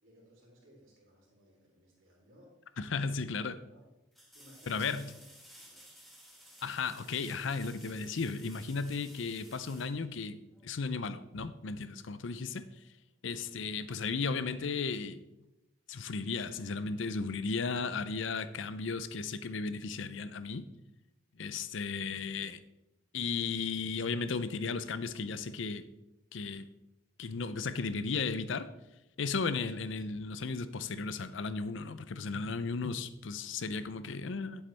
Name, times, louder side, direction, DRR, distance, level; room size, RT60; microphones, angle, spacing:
voice 1, 0.0-2.5 3.7-3.9 4.3-5.2 5.6-6.0, equal, 75° right, -3 dB, 3.7 m, -61 dB
sound 1, 2.7-2.8 4.1-10.7 13.6-13.7, equal, ahead, 1.7 m, -56 dB
voice 2, 2.8-3.6 4.7-5.1 6.6-10.4 10.6-12.6 13.2-15.2 15.9-20.7 21.4-22.6 23.1-25.8 26.3-26.7 27.2-28.7 29.2-34.6, left 4 dB, 70° left, 13 dB, 0.6 m, -35 dB
10.5 x 7.9 x 3.4 m, 0.91 s
head